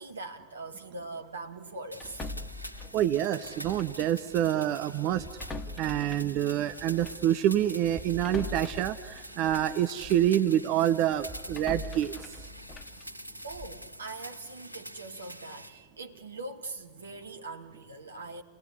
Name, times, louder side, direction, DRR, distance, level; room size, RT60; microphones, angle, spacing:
voice 1, 0.0-2.4 13.4-18.4, right 3 dB, 75° right, 2.4 m, -42 dB
sound 1, 1.9-15.7, equal, 90° left, 1.3 m, -45 dB
sound 2, 2.0-4.1 4.3-4.5 5.1-10.4 10.8-13.9, left 2 dB, 20° left, 1.7 m, -43 dB
voice 2, 2.9-5.2 5.8-12.4, right 11 dB, 40° right, 0.8 m, -27 dB
30.0 x 19.0 x 9.8 m
figure-of-eight pair, 90°, 0 cm